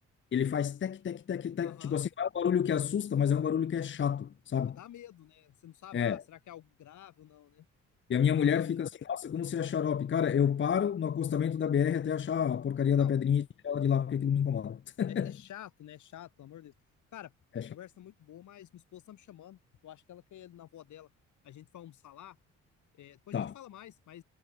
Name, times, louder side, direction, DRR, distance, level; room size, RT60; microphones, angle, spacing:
voice 1, 0.3-4.8 5.9-6.2 8.1-15.4 17.6-17.7 23.3-23.5, left 8 dB, 40° left, 0.8 m, -29 dB
voice 2, 1.6-2.0 4.7-7.7 8.4-8.7 13.0-13.1 15.1-16.7 17.1-17.3 17.7-21.1 21.4-22.4 22.9-24.2, left 12 dB, 75° left, 6.4 m, -50 dB
cardioid pair, 90°, 30 cm